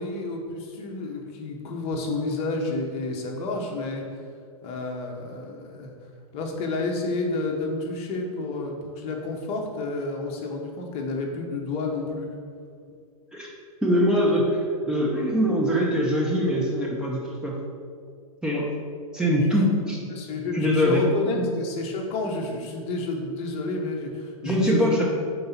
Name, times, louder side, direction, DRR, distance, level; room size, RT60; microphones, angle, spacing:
voice 1, 0.0-4.0 4.6-5.9 6.3-12.3 19.3-19.7 20.1-25.0, left 3 dB, 35° left, 1 dB, 1.0 m, -30 dB
voice 2, 13.8-17.6 18.4-18.7 19.1-20.0 20.5-21.0 21.3-21.4 24.4-25.0, equal, 5° right, -4 dB, 0.7 m, -23 dB
5.4 x 3.9 x 5.8 m, 2.2 s
hypercardioid pair, 130°, 19 cm